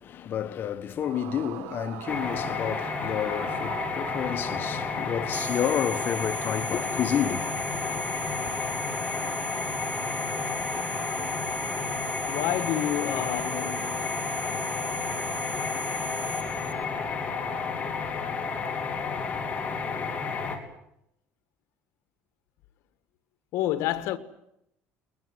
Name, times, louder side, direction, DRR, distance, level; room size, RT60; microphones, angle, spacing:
voice 1, 0.0-8.1, left 9 dB, 45° left, 1.3 m, -30 dB
Yell / Screaming, 1.0-5.9, right 15 dB, 85° right, 1.6 m, -42 dB
sound 1, 2.1-20.6, left 5 dB, 30° left, 3.7 m, -31 dB
sound 2, 5.3-16.7, right 4 dB, 40° right, 3.8 m, -38 dB
voice 2, 12.3-14.2 23.5-24.2, left 13 dB, 75° left, 1.7 m, -29 dB
21.5 x 21.0 x 9.4 m
cardioid pair, 120°, 5 cm